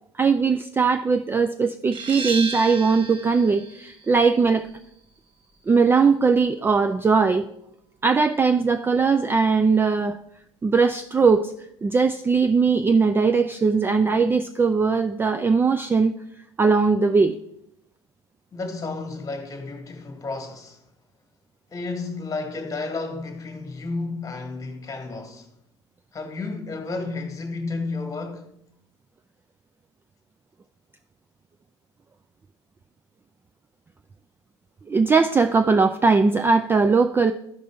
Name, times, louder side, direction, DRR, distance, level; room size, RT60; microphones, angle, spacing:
voice 1, 0.2-4.7 5.7-7.5 8.0-10.2 10.6-11.5 11.8-16.1 16.6-17.4 34.9-37.3, right 4 dB, 15° right, 0.4 m, -20 dB
sound 1, 1.9-7.3, right 4 dB, 35° right, 1.1 m, -36 dB
voice 2, 18.5-20.8 21.7-25.5 26.1-28.5, left 3 dB, 20° left, 1.5 m, -32 dB
13.0 x 5.0 x 3.4 m
figure-of-eight pair, 65°, 15 cm